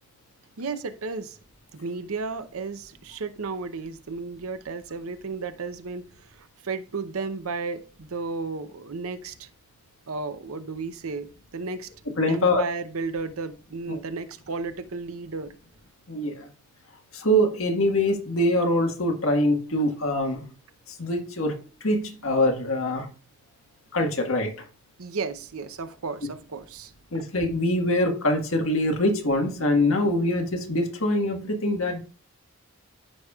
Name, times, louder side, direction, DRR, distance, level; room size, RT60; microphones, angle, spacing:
voice 1, 0.6-1.4 1.7-9.5 10.1-11.9 12.3-15.6 25.0-26.9, right 4 dB, 70° right, 0.7 m, -33 dB
voice 2, 12.2-12.6 13.9-14.0 16.1-16.3 17.1-20.4 21.0-21.6 21.8-23.1 23.9-24.5 27.1-32.0, left 1 dB, 65° left, 1.6 m, -24 dB
14.0 x 5.2 x 2.4 m
head